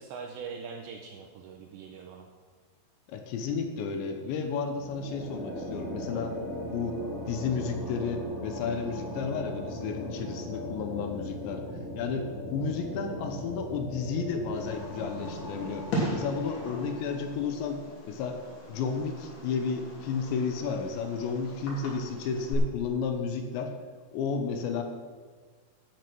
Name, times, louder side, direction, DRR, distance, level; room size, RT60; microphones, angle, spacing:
voice 1, 0.0-2.3, right 5 dB, 85° right, 3 dB, 2.5 m, -42 dB
voice 2, 3.1-6.4 6.7-11.6 12.0-17.8 18.1-18.4 18.7-23.7 24.1-24.8, left 5 dB, 75° left, 5 dB, 2.8 m, -32 dB
sound 1, 4.7-17.9, equal, 20° left, 2.0 m, -39 dB
Fireworks, 14.5-22.5, equal, 55° left, 4.9 m, -39 dB
12.0 x 8.4 x 6.2 m, 1.5 s
omnidirectional pair, 6.0 m